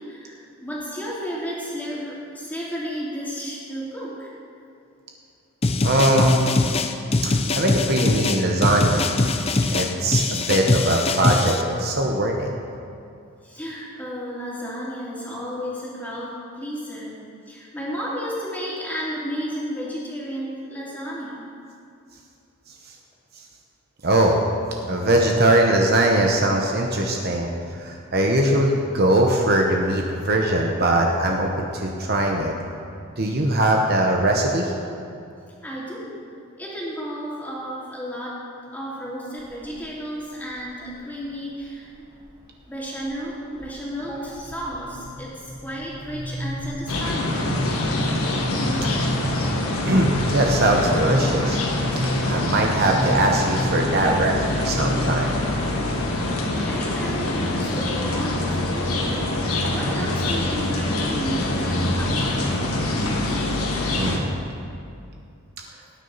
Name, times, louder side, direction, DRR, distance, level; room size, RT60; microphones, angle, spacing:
voice 1, 0.0-4.3 13.4-21.4 35.6-36.2 36.6-38.4 38.7-42.1 42.7-47.4 56.6-62.6, equal, 10° left, -7 dB, 2.7 m, -33 dB
sound 1, 5.6-11.6, left 3 dB, 25° left, 0.5 m, -22 dB
voice 2, 5.8-6.5 7.2-9.1 9.7-12.5 24.0-24.4 24.9-32.5 33.2-34.7 49.8-51.6 52.3-55.4 63.9-64.3, right 1 dB, 45° right, 1 dB, 0.9 m, -21 dB
sound 2, 39.4-39.9 40.4-41.0 41.6-42.5 42.9-43.2 43.6-56.1, equal, 20° right, 1.2 m, -31 dB
sound 3, 46.9-64.2, left 2 dB, 80° left, 1.7 m, -25 dB
18.0 x 9.6 x 4.1 m, 2.5 s
head